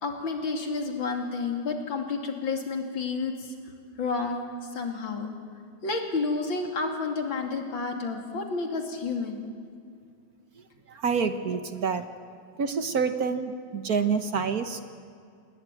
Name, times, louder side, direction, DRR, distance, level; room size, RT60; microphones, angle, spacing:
voice 1, 0.0-3.5 4.0-4.5 4.7-5.4 5.8-9.5, left 4 dB, 75° left, 4 dB, 3.4 m, -30 dB
voice 2, 10.9-12.0 12.6-14.8, right 5 dB, 55° right, 9 dB, 1.5 m, -27 dB
27.5 x 20.5 x 9.1 m, 2.3 s
omnidirectional pair, 2.2 m